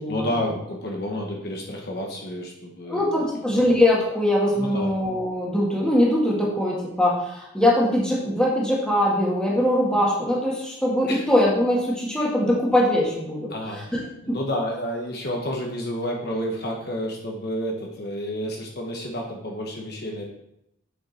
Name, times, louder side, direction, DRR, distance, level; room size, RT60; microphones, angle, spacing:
voice 1, 0.1-3.1 4.5-4.9 11.1-11.2 13.5-20.3, equal, 50° left, 0 dB, 1.4 m, -30 dB
voice 2, 2.9-13.8, left 1 dB, 5° left, -5 dB, 2.1 m, -22 dB
8.7 x 6.5 x 4.4 m, 0.81 s
head